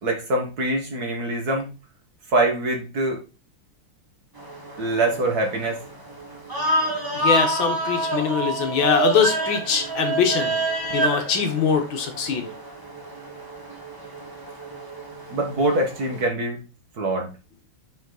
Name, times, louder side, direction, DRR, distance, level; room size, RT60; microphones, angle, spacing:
voice 1, 0.0-1.7 2.3-3.2 4.8-5.8 10.9-11.0 15.3-16.6 17.0-17.3, right 2 dB, 50° right, 2 dB, 1.7 m, -24 dB
sound 1, 4.4-16.3, right 2 dB, 15° right, 0.7 m, -28 dB
voice 2, 7.1-10.6 10.9-12.4, left 6 dB, 65° left, 5 dB, 1.7 m, -22 dB
5.4 x 5.2 x 3.9 m, 0.30 s
omnidirectional pair, 2.4 m